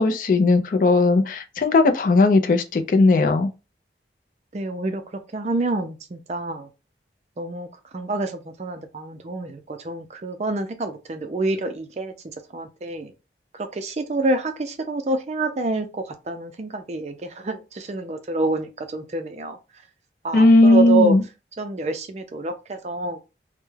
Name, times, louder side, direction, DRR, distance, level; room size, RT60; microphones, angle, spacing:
voice 1, 0.0-3.5 20.3-21.2, left 2 dB, 50° left, 0.3 m, -17 dB
voice 2, 4.5-5.0 5.3-6.7 7.4-7.7 7.9-13.1 13.5-19.6 20.2-21.2 21.6-23.2, right 2 dB, 40° right, 0.4 m, -27 dB
2.3 x 2.0 x 3.1 m
head